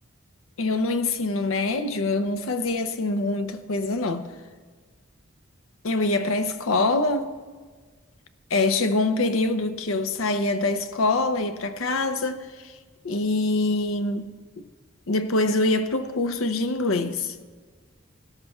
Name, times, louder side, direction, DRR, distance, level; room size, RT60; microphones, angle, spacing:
voice 1, 0.6-4.3 5.8-7.3 8.5-12.7 13.0-14.3 14.6-14.7 15.1-17.3, left 2 dB, 75° left, 0.6 m, -24 dB
17.5 x 13.0 x 2.3 m
head